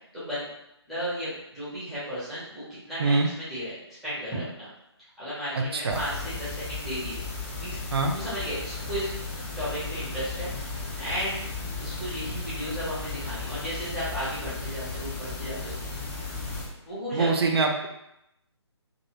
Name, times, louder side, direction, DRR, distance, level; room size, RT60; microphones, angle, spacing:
voice 1, 0.1-0.5 0.9-4.7 5.2-7.2 7.6-7.8 8.1-9.1 9.6-10.5 11.0-11.4 11.8-15.7 16.8-17.5, equal, ahead, -13 dB, 0.9 m, -34 dB
voice 2, 5.6-6.0 7.9-8.1 17.1-17.9, right 3 dB, 60° right, 3 dB, 0.5 m, -24 dB
sound 1, 5.9-16.7, left 3 dB, 25° left, 0.9 m, -35 dB
2.7 x 2.6 x 2.9 m, 0.82 s
figure-of-eight pair, 155°, 15 cm